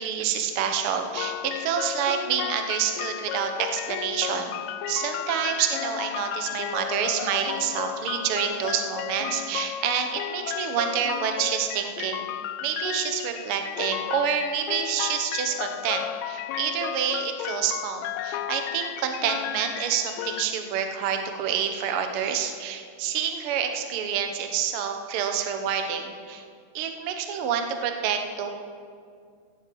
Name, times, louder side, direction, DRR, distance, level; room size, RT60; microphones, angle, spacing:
voice 1, 0.0-4.5 4.9-12.3 12.6-26.4 26.7-28.5, right 8 dB, 60° right, 5 dB, 1.6 m, -28 dB
sound 1, 1.2-20.4, left 12 dB, 80° left, 1.7 m, -33 dB
16.5 x 7.2 x 7.8 m, 2.2 s
omnidirectional pair, 3.5 m